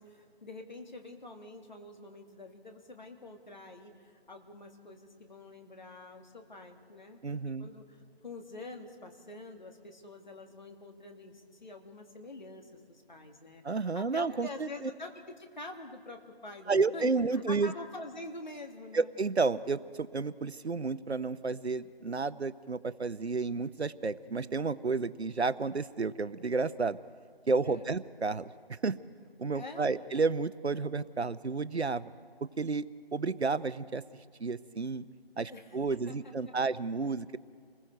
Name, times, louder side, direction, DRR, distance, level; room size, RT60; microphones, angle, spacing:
voice 1, 0.0-7.2 7.4-15.1 15.4-19.1 27.6-27.9 29.5-30.0 35.5-36.5, left 2 dB, 45° left, 4 dB, 2.0 m, -46 dB
voice 2, 7.2-7.7 13.6-14.7 16.7-17.7 18.9-27.0 27.5-29.0 29.4-32.1 32.6-32.9 33.1-34.0 34.4-35.0 35.4-37.4, right 4 dB, 90° right, 16 dB, 0.8 m, -31 dB
28.5 x 21.0 x 4.6 m, 2.1 s
figure-of-eight pair, 170°, 32 cm